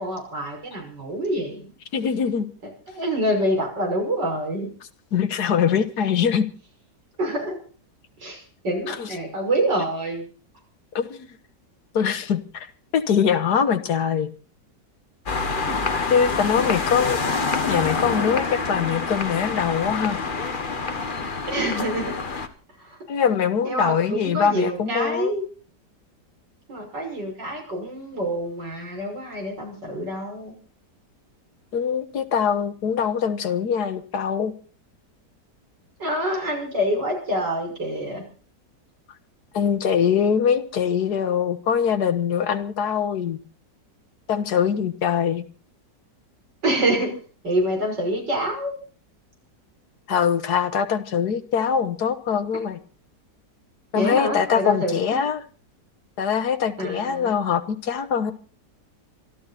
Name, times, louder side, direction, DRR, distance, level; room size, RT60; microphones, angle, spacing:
voice 1, 0.0-1.7 2.6-4.7 7.2-7.6 8.2-10.3 15.7-15.9 21.5-22.1 22.8-23.0 23.6-25.5 26.7-30.5 36.0-38.2 46.6-47.2 47.4-48.7 53.9-55.2 56.8-57.3, right 1 dB, 80° right, 2 dB, 6.7 m, -26 dB
voice 2, 1.9-2.5 5.1-6.5 8.9-9.1 11.0-11.3 11.9-12.7 12.9-14.3 16.1-17.2 17.7-20.2 23.1-25.3 31.7-34.5 39.5-43.4 44.3-45.5 50.1-52.8 53.9-55.4 56.2-58.3, left 7 dB, 65° left, 8 dB, 1.9 m, -23 dB
sound 1, 15.3-22.5, left 4 dB, 30° left, 1.4 m, -26 dB
26.5 x 12.5 x 4.2 m, 0.39 s
omnidirectional pair, 1.9 m